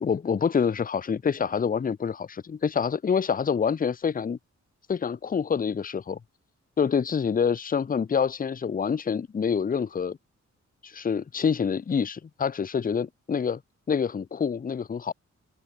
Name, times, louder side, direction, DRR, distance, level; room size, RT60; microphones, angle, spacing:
voice 1, 0.0-4.4 4.9-6.2 6.8-10.2 10.8-13.6 13.9-15.1, left 6 dB, 30° left, 0.6 m, -26 dB
cardioid pair, 90°, 29 cm